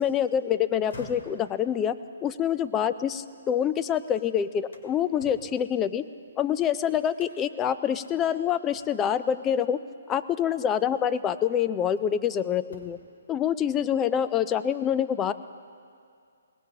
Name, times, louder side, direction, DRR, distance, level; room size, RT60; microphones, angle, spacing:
voice 1, 0.0-6.0 6.4-9.8 10.1-13.0 13.3-15.3, left 9 dB, 15° left, 14 dB, 0.4 m, -26 dB
sound 1, 0.7-3.8 4.2-6.6 7.1-7.6 8.0-8.2 8.7-9.2 10.4-10.6 11.2-12.3 12.6-13.2, left 2 dB, 65° left, 2.2 m, -50 dB
22.0 x 18.5 x 2.8 m, 2.3 s
hypercardioid pair, 150°, 0 cm